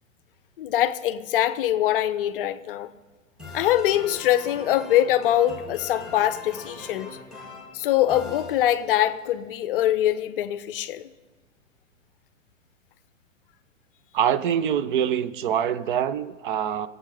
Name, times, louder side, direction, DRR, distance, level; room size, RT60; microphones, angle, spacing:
voice 1, 0.6-2.9 3.5-7.2 7.7-11.1, left 12 dB, 45° left, 0.6 m, -23 dB
sound 1, 3.4-9.1, left 3 dB, ahead, 2.0 m, -42 dB
voice 2, 14.1-16.9, right 9 dB, 40° right, 0.5 m, -24 dB
21.5 x 7.8 x 3.3 m
figure-of-eight pair, 110°, 40 cm